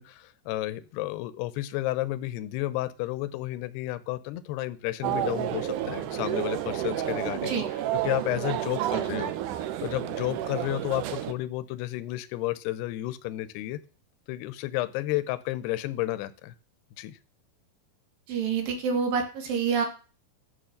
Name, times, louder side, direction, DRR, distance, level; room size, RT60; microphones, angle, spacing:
voice 1, 0.0-7.5 7.9-13.8 14.3-16.5 17.0-17.2, left 16 dB, 85° left, 14 dB, 2.8 m, -32 dB
sound 1, 5.0-11.3, right 12 dB, 80° right, 1.8 m, -30 dB
voice 2, 18.3-19.9, right 6 dB, 65° right, 5 dB, 3.3 m, -27 dB
11.5 x 7.7 x 6.5 m, 0.37 s
omnidirectional pair, 4.7 m